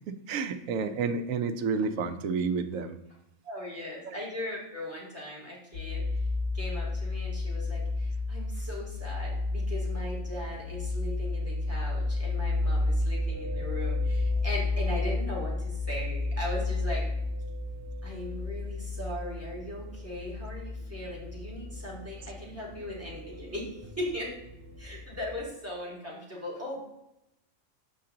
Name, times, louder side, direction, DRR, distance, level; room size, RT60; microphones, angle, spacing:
voice 1, 0.3-3.0 4.1-4.2, right 5 dB, 85° right, 10 dB, 1.1 m, -30 dB
voice 2, 3.4-6.2 6.5-17.0 18.0-24.3 24.8-26.8, left 1 dB, 10° right, -5 dB, 2.6 m, -38 dB
sound 1, 5.7-25.3, left 2 dB, 45° left, 3.4 m, -32 dB
7.5 x 5.6 x 3.8 m, 0.86 s
omnidirectional pair, 1.4 m